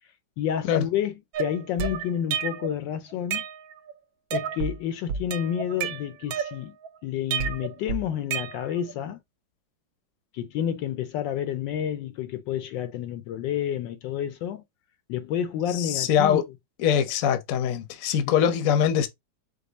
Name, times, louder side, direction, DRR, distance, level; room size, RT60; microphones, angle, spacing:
voice 1, 0.4-3.5 4.3-6.8 7.0-9.2 10.3-14.6 15.1-16.4 18.2-18.3, left 9 dB, 75° left, 1.2 m, -30 dB
sound 1, 1.3-2.8 3.1-3.9 4.3-4.8 5.1-6.9 7.3-8.9, right 7 dB, 90° right, 1.4 m, -31 dB
voice 2, 15.7-16.4 16.8-19.1, left 9 dB, 55° left, 1.0 m, -23 dB
5.3 x 2.3 x 3.8 m
omnidirectional pair, 2.1 m